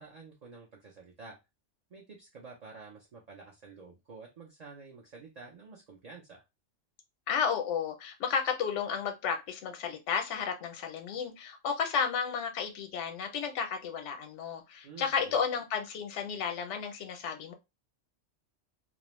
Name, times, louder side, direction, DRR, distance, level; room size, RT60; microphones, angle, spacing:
voice 1, 0.0-1.4 1.9-6.4 14.8-15.4, right 4 dB, 50° right, -2 dB, 0.5 m, -50 dB
voice 2, 7.3-17.5, left 6 dB, 75° left, 6 dB, 0.9 m, -32 dB
2.4 x 2.0 x 3.0 m, 0.23 s
omnidirectional pair, 1.3 m